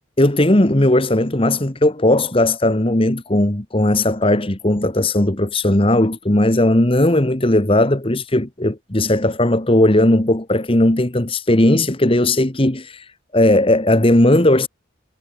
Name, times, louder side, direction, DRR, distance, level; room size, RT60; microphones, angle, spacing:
voice 1, 0.2-13.0 13.3-14.7, left 1 dB, 25° left, 1.5 m, -17 dB
head